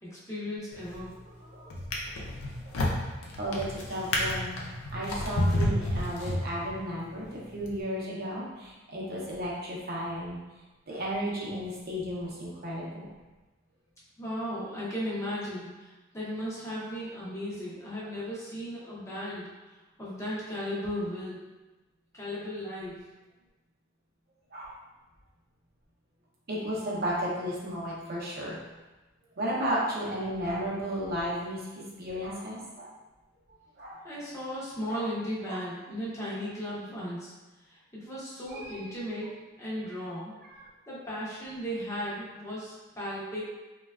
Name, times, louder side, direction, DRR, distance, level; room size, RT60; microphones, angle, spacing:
voice 1, 0.0-1.2 14.2-19.5 20.0-21.4 22.1-23.0 34.0-37.3 37.6-39.3 39.6-40.3 40.9-43.4, equal, 15° left, -8 dB, 0.6 m, -36 dB
Drawer open or close, 0.7-1.2 1.7-6.9 7.6-7.8, left 1 dB, 85° left, 0.5 m, -30 dB
voice 2, 3.4-4.5 4.9-10.4 10.9-13.1 24.5-24.7 26.5-28.7 29.4-32.9 33.8-34.0 34.9-35.0 35.4-35.6 38.5-38.9 40.5-40.6, equal, 50° right, -5 dB, 0.6 m, -34 dB
3.1 x 2.2 x 2.3 m, 1.1 s
head